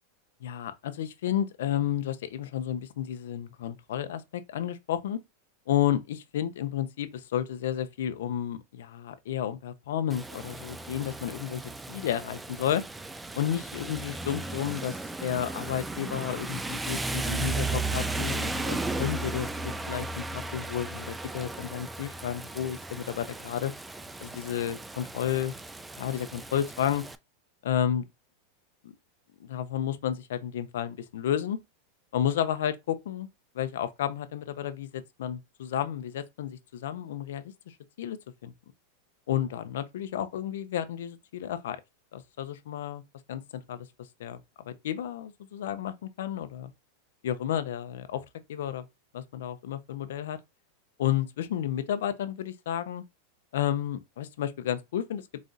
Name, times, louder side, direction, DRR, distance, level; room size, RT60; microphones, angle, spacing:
voice 1, 0.4-5.2 5.7-11.6 11.9-12.8 13.3-23.7 24.2-25.5 26.0-27.0 27.6-28.1 28.8-28.9 29.4-31.6 32.1-33.3 33.5-38.2 38.4-38.5 39.3-41.8 42.1-43.0 43.3-43.9 44.2-44.4 44.7-46.7 47.2-48.2 48.5-48.9 49.1-50.4 51.0-53.0 53.5-55.3, left 10 dB, 80° left, 0.5 m, -31 dB
Rain, 10.1-27.1, right 2 dB, 5° right, 0.3 m, -35 dB
4.1 x 2.5 x 3.8 m
supercardioid pair, 140°, 0 cm